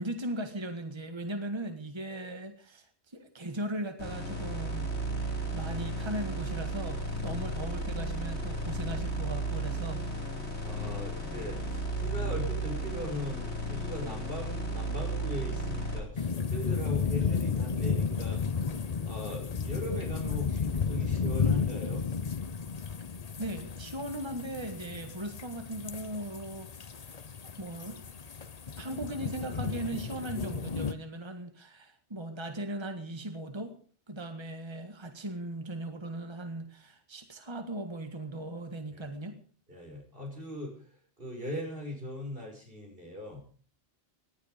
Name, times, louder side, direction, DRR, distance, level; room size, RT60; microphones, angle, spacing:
voice 1, 0.0-4.9 5.2-10.1 23.4-26.7 27.0-27.2 27.4-28.0 28.8-33.7 34.1-39.4, right 1 dB, 25° right, 7 dB, 1.7 m, -38 dB
sound 1, 4.0-16.0, right 1 dB, 70° left, 5.5 m, -34 dB
voice 2, 10.6-18.4 19.0-22.1 38.9-39.1 39.7-40.8 41.2-43.4, left 1 dB, 50° right, 1 dB, 6.1 m, -39 dB
sound 2, 16.2-30.9, left 5 dB, 40° left, 0.8 m, -33 dB
19.0 x 13.0 x 5.1 m, 0.43 s
omnidirectional pair, 1.2 m